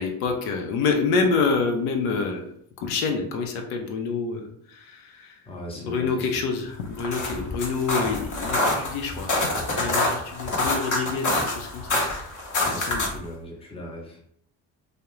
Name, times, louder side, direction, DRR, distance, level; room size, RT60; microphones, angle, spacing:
voice 1, 0.0-2.4 2.8-4.4 4.8-5.3 5.8-9.5 9.8-12.0 12.6-13.1, left 4 dB, 80° left, 3 dB, 0.6 m, -27 dB
voice 2, 5.5-6.3 12.6-14.2, equal, 10° left, -1 dB, 0.6 m, -38 dB
sound 1, 6.8-13.3, left 2 dB, 40° left, 0.8 m, -26 dB
2.3 x 2.1 x 3.0 m, 0.68 s
supercardioid pair, 65°, 50 cm